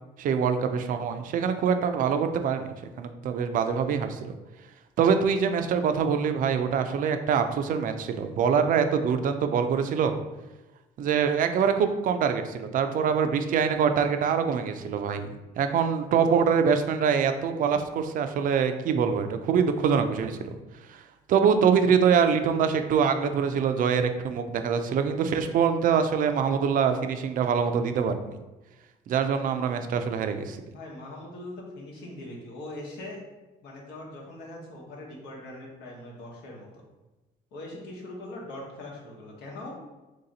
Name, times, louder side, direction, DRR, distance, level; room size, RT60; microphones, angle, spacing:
voice 1, 0.2-2.7 3.0-4.2 5.0-10.2 11.0-15.3 15.6-20.5 20.9-21.0 21.3-28.1 29.1-30.6, right 6 dB, 55° right, 8 dB, 0.4 m, -24 dB
voice 2, 30.6-33.2 33.6-36.8 37.5-39.8, left 1 dB, 85° left, -2 dB, 1.1 m, -41 dB
3.2 x 2.8 x 3.9 m, 1.1 s
cardioid pair, 110°, 17 cm